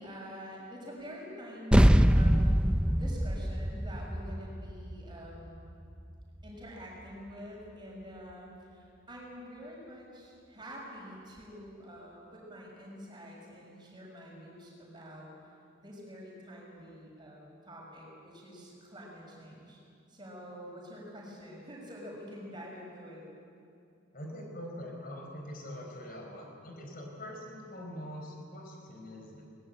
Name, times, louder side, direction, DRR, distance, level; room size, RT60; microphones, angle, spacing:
voice 1, 0.0-5.6 6.4-15.3 15.8-19.8 20.1-23.2, equal, 20° right, -3 dB, 6.5 m, -47 dB
sound 1, 1.7-6.5, equal, 5° right, 0.5 m, -25 dB
voice 2, 24.1-29.4, equal, 45° left, 1 dB, 4.8 m, -43 dB
23.0 x 20.5 x 9.0 m, 2.5 s
head